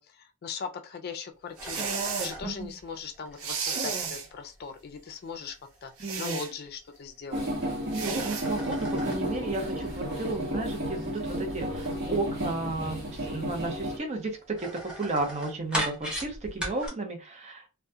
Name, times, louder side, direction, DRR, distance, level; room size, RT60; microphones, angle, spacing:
voice 1, 0.0-1.9 2.2-5.6 5.8-5.9 6.2-7.4, left 5 dB, 50° left, 0.4 m, -39 dB
sound 1, 1.6-7.6 7.9-16.9, equal, 5° right, 0.9 m, -40 dB
sound 2, 1.6-2.4 3.4-4.3 6.0-6.5 7.9-8.5, right 5 dB, 80° right, 0.6 m, -32 dB
voice 2, 2.4-2.8 6.0-6.4 7.9-17.6, right 2 dB, 35° right, 0.6 m, -33 dB
sound 3, 7.3-14.0, equal, 60° right, 0.9 m, -32 dB
2.3 x 2.1 x 2.6 m
head